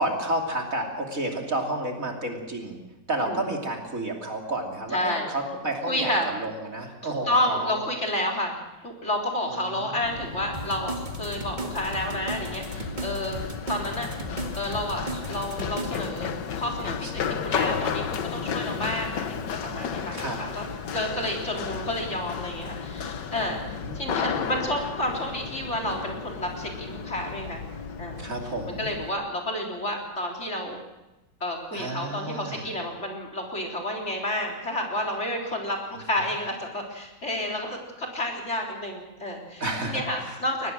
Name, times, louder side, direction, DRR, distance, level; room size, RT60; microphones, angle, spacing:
voice 1, 0.0-2.8 3.1-7.8 9.5-9.8 17.0-17.4 20.1-20.4 23.8-24.5 28.2-28.9 31.7-32.7 39.6-40.4, right 1 dB, 45° right, 1 dB, 3.3 m, -31 dB
voice 2, 4.9-5.3 5.9-6.3 7.2-8.6 8.8-14.1 14.6-19.4 19.6-20.7 20.9-27.6 28.0-28.3 28.8-30.8 31.4-40.7, left 1 dB, 35° left, 1 dB, 3.9 m, -30 dB
Run, 10.0-29.1, left 6 dB, 70° left, 1.7 m, -33 dB
sound 1, 10.5-16.1, right 3 dB, 25° right, 2.0 m, -36 dB
23.0 x 20.0 x 6.3 m, 1.0 s
omnidirectional pair, 2.0 m